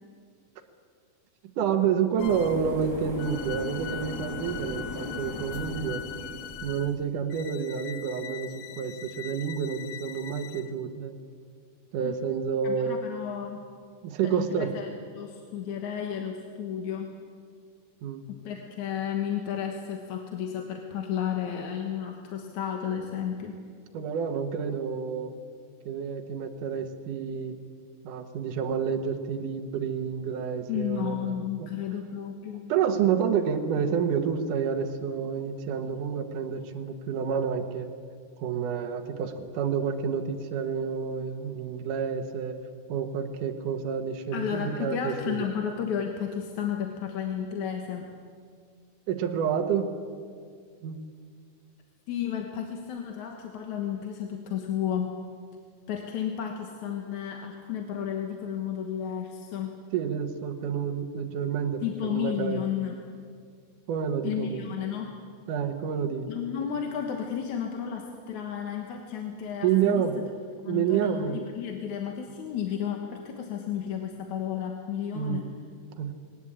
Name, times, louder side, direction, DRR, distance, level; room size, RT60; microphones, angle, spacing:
voice 1, 1.6-6.0 6.6-11.1 11.9-13.0 14.0-14.7 18.0-18.2 23.9-25.3 25.9-27.6 28.0-31.3 31.6-31.7 32.7-37.9 38.4-42.6 42.9-45.4 49.1-50.0 50.8-51.0 59.9-62.6 63.9-64.7 65.5-66.3 69.6-70.2 70.7-71.4 75.1-75.4 76.0-76.1, right 7 dB, 75° right, 6 dB, 2.8 m, -29 dB
sound 1, 2.2-2.7 3.2-10.7, left 11 dB, 90° left, 2.4 m, -42 dB
sound 2, 2.2-7.0, equal, 5° right, 7.6 m, -38 dB
voice 2, 12.6-13.6 14.2-17.1 18.3-23.6 30.7-32.7 44.3-48.1 52.1-55.1 55.9-59.7 61.8-63.0 64.2-65.1 66.3-70.3 70.6-75.5, left 8 dB, 65° left, 3 dB, 2.7 m, -32 dB
21.0 x 18.5 x 8.6 m, 2.1 s
omnidirectional pair, 3.8 m